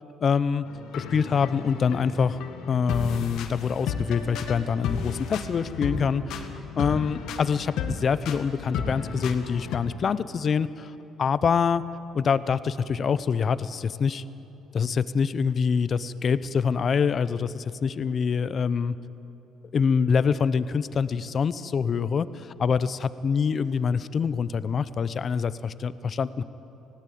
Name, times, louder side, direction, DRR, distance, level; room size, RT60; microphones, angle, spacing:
voice 1, 0.2-0.7 0.9-2.4 2.7-6.5 6.8-10.9 11.2-11.8 12.1-14.2 14.7-19.0 19.7-26.4, left 6 dB, 45° left, 15 dB, 0.8 m, -25 dB
sound 1, 0.7-9.8, left 6 dB, 75° left, 1.8 m, -33 dB
19.5 x 16.5 x 8.6 m, 2.9 s
supercardioid pair, 80°, 0 cm